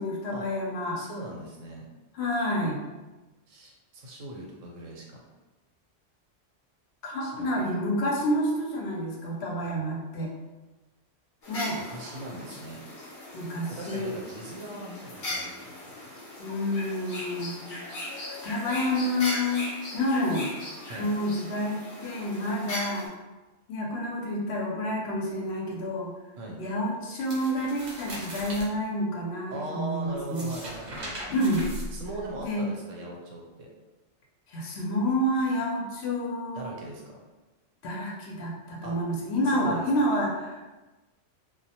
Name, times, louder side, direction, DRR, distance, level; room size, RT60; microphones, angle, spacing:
voice 1, 0.0-1.0 2.1-2.8 7.0-10.3 11.5-11.8 13.3-14.1 16.4-17.7 18.4-19.7 19.9-20.5 21.0-23.1 23.7-26.1 26.6-30.5 31.3-31.6 32.4-32.7 34.5-36.7 37.8-40.6, equal, 65° left, -1 dB, 0.8 m, -29 dB
voice 2, 1.0-1.8 3.5-5.2 7.2-7.6 11.8-12.8 13.7-15.7 16.0-16.1 20.9-21.1 26.4-26.6 29.5-31.2 31.9-33.7 36.5-37.2 38.8-39.0 39.4-39.9, right 2 dB, 85° right, -1 dB, 1.0 m, -40 dB
sound 1, 11.4-23.1, left 1 dB, 45° left, 0.5 m, -38 dB
sound 2, 27.2-28.7 30.2-32.4, equal, 50° right, 0.6 m, -39 dB
2.2 x 2.1 x 2.7 m, 1.1 s
omnidirectional pair, 1.3 m